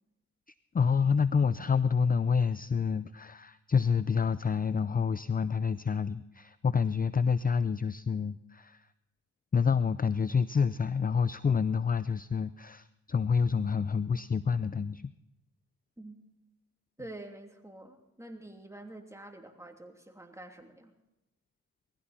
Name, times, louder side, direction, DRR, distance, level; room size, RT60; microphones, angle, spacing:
voice 1, 0.7-8.8 9.5-15.1, left 6 dB, 25° left, 15 dB, 0.5 m, -28 dB
voice 2, 17.0-20.9, right 1 dB, 10° right, 3 dB, 2.9 m, -47 dB
20.0 x 15.5 x 4.3 m, 0.94 s
cardioid pair, 65°, 32 cm